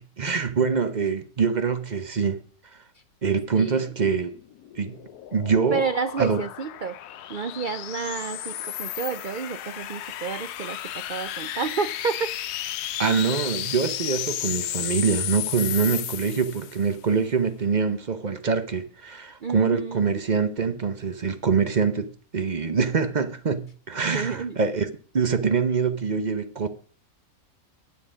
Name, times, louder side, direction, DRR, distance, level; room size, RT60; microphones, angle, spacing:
voice 1, 0.0-2.4 3.2-4.3 4.7-5.0 5.3-5.8 6.2-6.4 13.0-24.9 25.1-26.7, right 5 dB, 40° right, 0.7 m, -24 dB
voice 2, 3.5-3.9 5.7-7.0 7.3-12.3 19.4-20.2 24.0-24.6, right 5 dB, 85° right, 0.4 m, -30 dB
sound 1, 4.4-16.9, left 12 dB, 90° left, 1.2 m, -33 dB
9.9 x 9.5 x 5.0 m
omnidirectional pair, 1.6 m